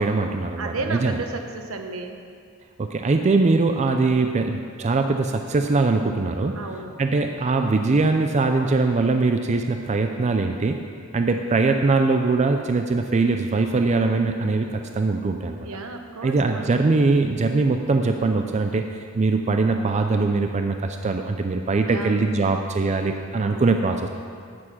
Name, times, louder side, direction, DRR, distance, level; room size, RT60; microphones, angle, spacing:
voice 1, 0.0-1.1 2.8-6.6 7.0-10.8 11.1-15.7 16.2-24.1, right 3 dB, 30° right, 5 dB, 0.4 m, -22 dB
voice 2, 0.6-2.2 6.5-7.0 15.5-16.8 21.9-22.3 23.4-23.6, right 3 dB, 75° right, 5 dB, 1.0 m, -33 dB
9.1 x 8.8 x 5.7 m, 2.2 s
head